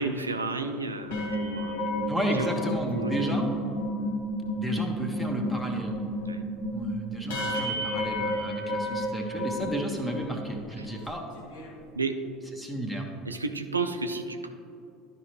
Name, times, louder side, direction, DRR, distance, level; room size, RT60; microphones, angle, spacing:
voice 1, 0.0-2.5 3.0-3.1 6.3-6.5 10.8-10.9 11.9-12.1 13.3-14.5, right 3 dB, 85° right, 6 dB, 0.4 m, -32 dB
sound 1, 1.0-10.5 10.9-11.1 11.4-11.7, left 1 dB, 70° left, 1.6 m, -31 dB
voice 2, 2.1-3.5 4.6-6.0 6.7-11.2 12.6-13.1, right 1 dB, 5° left, 2 dB, 1.3 m, -32 dB
12.5 x 5.2 x 3.2 m, 2.6 s
figure-of-eight pair, 70°, 0 cm